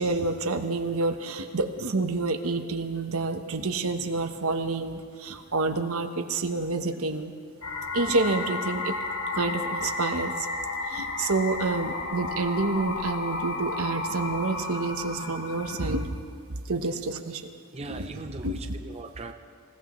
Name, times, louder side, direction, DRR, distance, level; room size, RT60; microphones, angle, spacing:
voice 1, 0.0-7.3 7.9-8.9 9.3-10.5 10.9-16.1 16.7-17.4 17.9-18.6, right 3 dB, 80° right, 7 dB, 1.1 m, -28 dB
sound 1, 7.6-16.0, left 3 dB, 75° left, 1.8 m, -33 dB
voice 2, 17.7-19.3, right 3 dB, 30° right, 5 dB, 0.6 m, -40 dB
26.5 x 16.5 x 3.2 m, 2.3 s
head